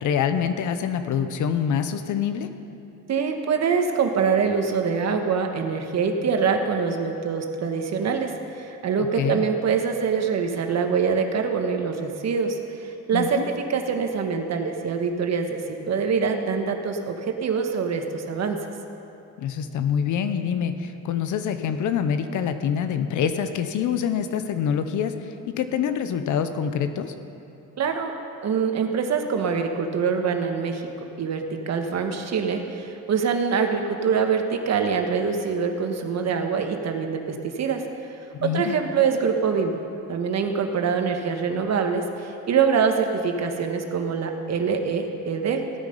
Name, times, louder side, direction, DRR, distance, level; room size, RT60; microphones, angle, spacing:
voice 1, 0.0-2.5 9.2-9.5 13.1-13.4 19.4-25.1 25.6-27.1 38.3-38.8, left 8 dB, 80° left, 9 dB, 0.9 m, -25 dB
voice 2, 3.1-13.4 13.7-18.6 27.8-28.1 28.4-30.8 31.2-37.8 38.4-39.8 40.1-45.6, right 6 dB, 60° right, 4 dB, 1.4 m, -24 dB
15.5 x 9.1 x 5.4 m, 2.8 s
cardioid pair, 90°, 30 cm